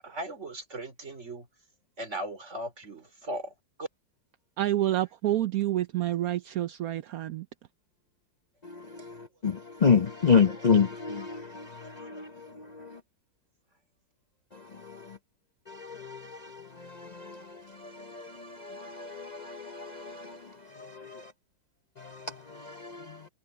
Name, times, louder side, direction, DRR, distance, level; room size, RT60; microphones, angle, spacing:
voice 1, 0.0-1.5 2.0-3.5 3.8-3.9, right 1 dB, 35° right, 4.0 m, -37 dB
voice 2, 4.6-7.5, right 13 dB, 65° right, 1.0 m, -28 dB
voice 3, 9.4-12.3 12.8-12.9 15.7-16.6 16.9-17.4 18.1-20.4 20.8-21.2 22.6-23.2, left 6 dB, 60° left, 0.4 m, -28 dB
omnidirectional pair, 2.0 m